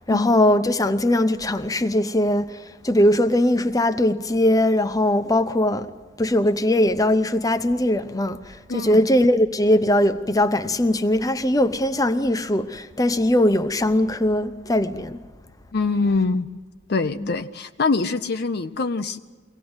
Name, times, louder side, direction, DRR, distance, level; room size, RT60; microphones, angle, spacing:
voice 1, 0.1-5.9 6.2-8.4 8.7-15.2 17.0-17.4, left 1 dB, 20° left, 0.7 m, -20 dB
voice 2, 8.7-9.0 15.7-16.5 16.9-19.2, left 3 dB, 55° left, 0.6 m, -24 dB
23.5 x 17.5 x 8.0 m
head